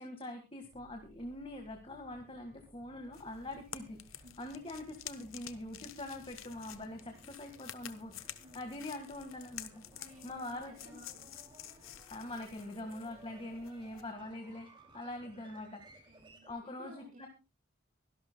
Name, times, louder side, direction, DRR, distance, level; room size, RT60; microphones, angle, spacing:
voice 1, 0.0-9.8 10.2-11.0 12.1-14.7 14.9-16.1 16.4-17.3, left 1 dB, 25° left, 4 dB, 1.7 m, -44 dB
sound 1, 0.6-16.5, right 1 dB, 25° right, 2.8 m, -60 dB
sound 2, 3.1-14.1, left 11 dB, 70° left, 1.0 m, -50 dB
voice 2, 9.9-11.3 16.1-17.3, right 1 dB, 45° right, -5 dB, 5.1 m, -56 dB
24.0 x 12.0 x 2.3 m, 0.29 s
head